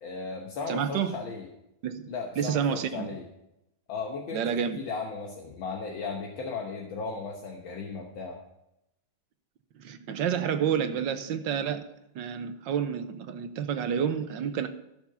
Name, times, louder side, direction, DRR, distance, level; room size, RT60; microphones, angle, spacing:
voice 1, 0.0-1.5 2.1-3.2 3.9-4.4 4.8-8.4, left 4 dB, 70° left, 1 dB, 1.9 m, -36 dB
voice 2, 0.7-1.2 1.8-3.2 4.3-4.8 9.7-11.8 12.1-14.7, right 8 dB, 70° right, 9 dB, 1.4 m, -29 dB
14.5 x 6.4 x 5.6 m, 0.85 s
omnidirectional pair, 2.2 m